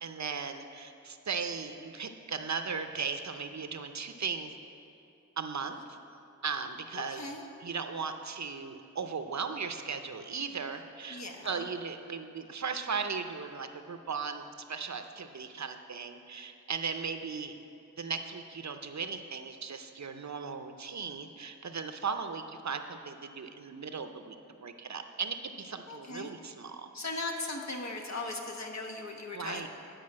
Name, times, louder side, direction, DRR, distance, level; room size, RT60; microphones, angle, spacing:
voice 1, 0.0-4.5 5.4-5.8 6.4-7.2 7.6-17.5 18.0-26.9 29.3-29.7, right 5 dB, 55° right, 7 dB, 0.7 m, -37 dB
voice 2, 6.9-7.5 11.1-11.7 25.9-26.3 26.9-29.7, left 2 dB, 55° left, 2 dB, 1.3 m, -38 dB
10.5 x 5.0 x 7.5 m, 2.7 s
cardioid pair, 45°, 33 cm